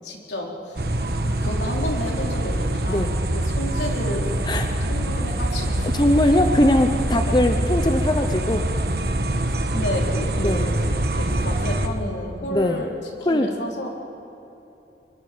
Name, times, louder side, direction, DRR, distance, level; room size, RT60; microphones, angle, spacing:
voice 1, 0.0-0.9 1.2-4.3 4.9-6.0 7.2-7.4 9.7-10.8 11.1-13.0 13.3-13.9, left 1 dB, 85° left, 0 dB, 3.5 m, -31 dB
sound 1, 0.8-11.9, right 1 dB, 60° right, 1.4 m, -24 dB
voice 2, 5.9-8.7 10.4-10.7 12.5-12.8 13.3-13.5, left 1 dB, 25° left, 6 dB, 0.8 m, -20 dB
23.5 x 23.5 x 5.1 m, 2.9 s
head